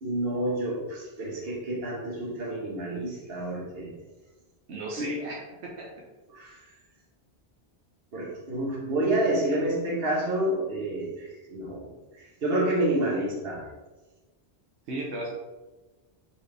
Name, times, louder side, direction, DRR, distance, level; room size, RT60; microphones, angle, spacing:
voice 1, 0.0-3.9 5.0-5.1 6.3-6.6 8.1-11.9 12.1-13.7, right 1 dB, 65° right, -3 dB, 1.3 m, -29 dB
voice 2, 4.7-5.9 14.9-15.3, right 2 dB, 85° right, -2 dB, 1.0 m, -35 dB
4.2 x 3.2 x 3.3 m, 1.2 s
omnidirectional pair, 1.1 m